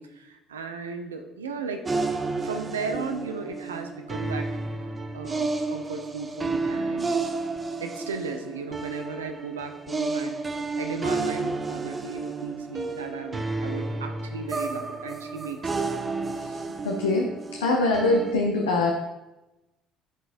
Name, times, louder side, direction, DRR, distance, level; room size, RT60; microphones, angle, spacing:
voice 1, 0.0-2.0 2.4-4.5 4.8-4.9 5.1-7.1 7.8-15.8, right 4 dB, 80° right, 6 dB, 0.5 m, -36 dB
sound 1, 1.8-18.3, right 3 dB, 25° right, 0.6 m, -31 dB
voice 2, 16.4-17.3 17.6-18.9, left 2 dB, 75° left, 0 dB, 0.6 m, -24 dB
10.0 x 4.0 x 2.5 m, 0.97 s
figure-of-eight pair, 55°, 0 cm